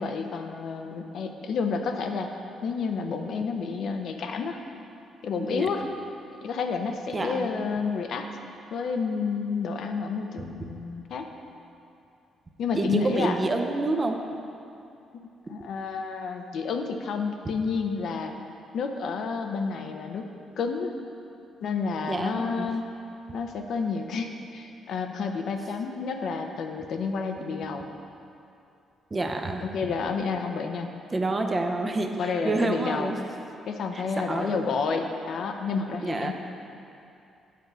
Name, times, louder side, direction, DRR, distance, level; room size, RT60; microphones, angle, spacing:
voice 1, 0.0-2.3 2.6-4.6 5.2-5.9 6.4-8.3 8.7-11.3 12.6-13.4 15.1-18.3 18.7-20.3 20.6-20.9 21.6-22.8 23.3-27.9 29.6-30.9 32.2-33.1 33.7-36.3, left 5 dB, 70° left, 5 dB, 0.6 m, -30 dB
voice 2, 5.4-5.7 7.1-7.6 12.7-14.2 15.5-15.6 22.1-22.7 29.1-29.6 31.1-33.2 33.9-34.8 36.0-36.3, right 2 dB, 25° right, 4 dB, 0.7 m, -28 dB
7.6 x 4.6 x 6.7 m, 2.6 s
cardioid pair, 90°, 0 cm